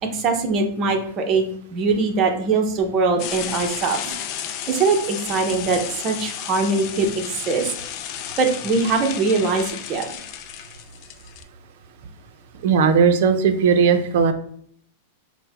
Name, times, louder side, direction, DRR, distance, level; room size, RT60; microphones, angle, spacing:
voice 1, 0.1-1.4 1.7-4.2 4.4-7.7 8.4-10.1, right 4 dB, 35° right, 3 dB, 0.8 m, -22 dB
sound 1, 3.2-11.4, left 10 dB, 45° left, 0.4 m, -33 dB
voice 2, 12.6-14.3, right 6 dB, 65° right, 8 dB, 0.5 m, -17 dB
4.5 x 2.1 x 3.5 m, 0.65 s
hypercardioid pair, 130°, 0 cm